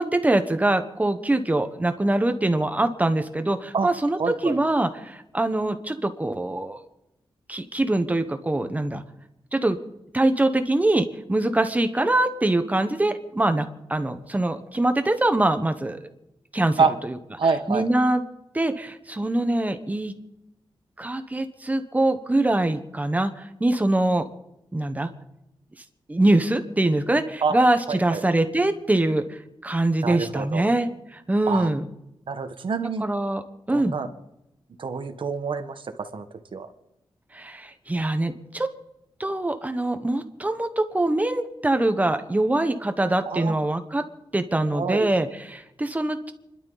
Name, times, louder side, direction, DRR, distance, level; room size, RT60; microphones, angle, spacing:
voice 1, 0.0-6.8 7.5-9.0 9.5-9.8 10.1-16.1 16.5-17.2 17.7-18.2 18.5-20.1 21.0-24.3 24.7-25.1 26.1-31.9 33.0-33.4 33.7-34.0 37.3-38.7 39.2-44.0 44.3-46.3, right 2 dB, 15° right, 8 dB, 1.2 m, -23 dB
voice 2, 4.2-4.6 16.8-16.9 17.4-17.8 27.4-27.5 27.9-28.2 30.0-30.6 31.5-31.7 32.3-33.0 33.7-34.1 34.8-36.2 36.5-36.7 43.2-43.5 44.7-45.1, right 5 dB, 60° right, 8 dB, 1.5 m, -26 dB
29.5 x 12.0 x 4.1 m, 0.88 s
wide cardioid pair, 160°, 10 cm